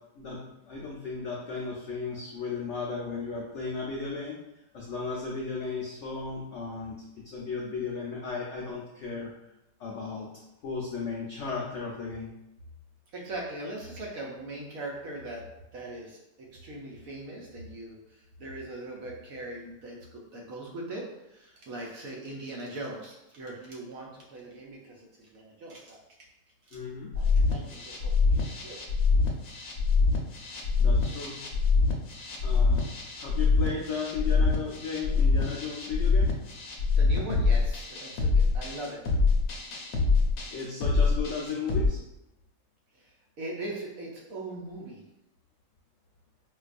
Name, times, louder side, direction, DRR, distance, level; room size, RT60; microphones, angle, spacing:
voice 1, 0.7-4.4 4.7-6.9 7.2-9.3 9.8-10.3 10.6-12.3 26.7-27.1 30.8-31.4 32.4-32.8 33.2-36.3 40.5-42.0, left 4 dB, 90° left, -3 dB, 0.6 m, -35 dB
voice 2, 13.1-15.4 15.7-26.0 26.6-26.8 27.1-28.8 37.0-38.3 38.5-39.0 42.9-45.0, right 2 dB, 65° right, -2 dB, 0.9 m, -40 dB
sound 1, 27.1-41.9, left 4 dB, 70° left, 1.0 m, -25 dB
4.6 x 2.3 x 2.4 m, 0.88 s
omnidirectional pair, 1.9 m